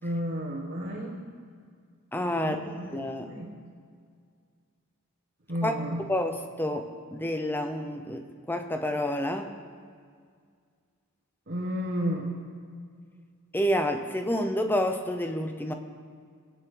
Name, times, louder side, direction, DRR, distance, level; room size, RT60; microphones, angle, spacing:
voice 1, 0.0-1.1 2.3-2.8 3.2-3.5 5.5-6.0 11.5-12.3, equal, 45° right, -5 dB, 1.7 m, -32 dB
voice 2, 2.1-3.3 5.6-5.7 6.1-9.5 13.5-15.7, equal, 10° left, 6 dB, 0.7 m, -29 dB
21.0 x 9.4 x 3.9 m, 2.1 s
head